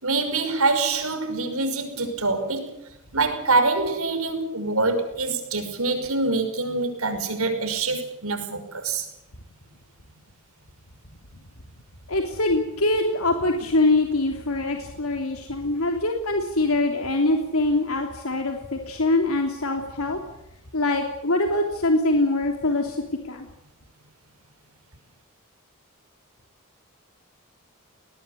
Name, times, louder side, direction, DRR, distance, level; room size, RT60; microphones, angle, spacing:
voice 1, 0.0-2.8 3.1-9.1, right 3 dB, 80° right, 5.8 m, -25 dB
voice 2, 12.1-20.2 20.7-23.0 23.2-23.5, left 2 dB, 85° left, 3.2 m, -23 dB
20.0 x 20.0 x 8.2 m
head